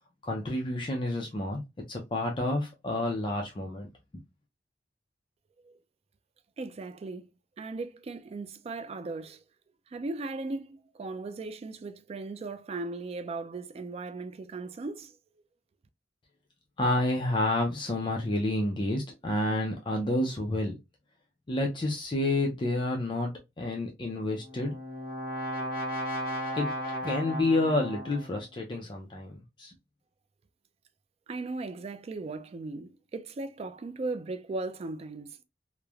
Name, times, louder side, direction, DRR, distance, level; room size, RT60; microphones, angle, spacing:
voice 1, 0.2-1.6 1.9-3.9 16.8-20.7 21.5-23.3 23.6-24.7 26.6-26.7 27.0-29.7, left 2 dB, 30° left, 0.4 m, -29 dB
voice 2, 6.6-7.3 7.6-9.4 9.9-15.2 31.3-35.4, right 3 dB, 35° right, 0.3 m, -37 dB
Brass instrument, 24.2-28.4, equal, 55° left, 0.8 m, -35 dB
3.1 x 2.1 x 2.3 m
head